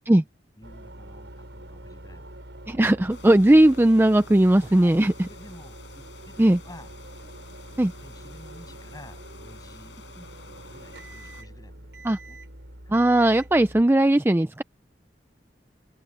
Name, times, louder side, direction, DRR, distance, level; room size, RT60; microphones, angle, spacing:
voice 1, 0.6-2.4 4.6-5.0 5.3-6.9 7.7-10.0 10.4-12.4 12.8-12.9, left 1 dB, 20° left, 8.0 m, -50 dB
sound 1, 0.6-13.8, right 1 dB, 80° right, 5.7 m, -45 dB
sound 2, 0.7-13.7, right 1 dB, 65° right, 7.7 m, -57 dB
voice 2, 2.7-5.1 6.4-6.6 7.8-7.9 12.1-12.2 12.9-14.6, right 1 dB, 10° right, 0.4 m, -18 dB
sound 3, 3.1-11.4, left 6 dB, 90° left, 4.6 m, -51 dB
open air
head